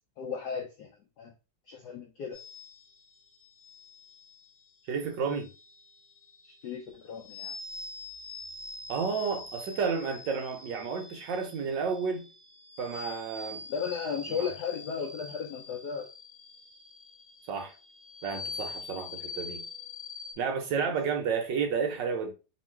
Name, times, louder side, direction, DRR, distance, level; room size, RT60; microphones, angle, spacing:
voice 1, 0.2-0.9 1.2-1.3 1.7-2.4 6.4-7.5 13.7-16.1 20.8-20.9, left 6 dB, 75° left, 0.9 m, -35 dB
sound 1, 2.3-20.3, left 3 dB, 5° right, 1.2 m, -45 dB
voice 2, 4.9-5.5 8.9-12.2 12.8-13.6 14.3-14.5 17.5-17.7 18.2-19.6 20.4-22.3, right 5 dB, 65° right, 1.2 m, -31 dB
3.1 x 3.0 x 4.4 m
omnidirectional pair, 2.4 m